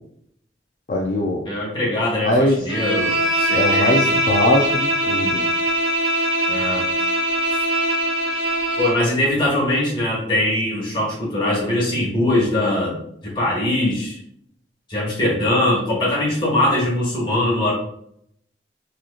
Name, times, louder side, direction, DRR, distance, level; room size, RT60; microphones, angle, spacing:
voice 1, 0.9-1.4 2.2-2.6 3.5-5.4, left 1 dB, 45° left, -1 dB, 0.4 m, -21 dB
voice 2, 1.4-4.1 6.5-6.8 8.8-13.0 13.2-14.2 14.9-17.7, left 1 dB, 25° left, -5 dB, 1.3 m, -21 dB
Bowed string instrument, 2.7-9.1, right 1 dB, 75° right, 1.1 m, -21 dB
3.7 x 2.9 x 2.4 m, 0.70 s
head